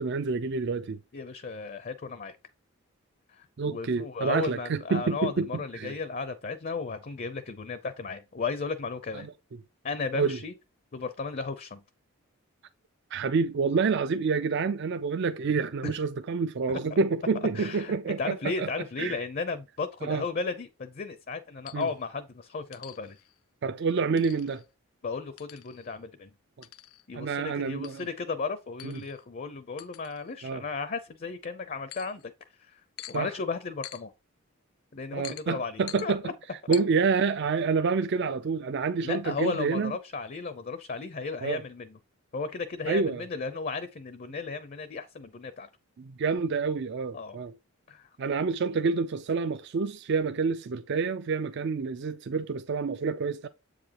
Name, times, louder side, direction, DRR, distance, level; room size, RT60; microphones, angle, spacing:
voice 1, 0.0-1.0 3.6-5.5 5.7-5.9 10.1-10.4 13.1-18.7 19.0-19.2 20.0-20.2 21.7-21.9 23.6-24.6 27.1-28.0 28.8-28.9 30.4-30.6 33.1-33.3 35.1-36.2 36.7-39.9 41.4-41.6 42.9-43.3 46.0-47.5 48.2-53.5, right 4 dB, 55° right, 0.4 m, -28 dB
voice 2, 1.1-2.4 3.3-9.3 9.8-10.5 10.9-11.8 15.8-16.0 16.7-16.8 17.5-23.2 25.0-26.3 27.1-34.1 34.9-36.3 39.0-42.0 42.3-45.7 47.1-47.4 47.9-48.2, left 4 dB, 40° left, 0.5 m, -35 dB
sound 1, 21.6-22.0 22.7-23.4 24.2-24.7 25.4-26.0 26.6-27.1 27.8-28.1 28.8-29.2 29.8-30.5 31.9-32.3 33.0-33.2 33.8-34.0 35.2-35.5 35.9-36.1 36.7-36.8, left 14 dB, 90° left, 0.5 m, -45 dB
7.8 x 4.9 x 2.9 m
head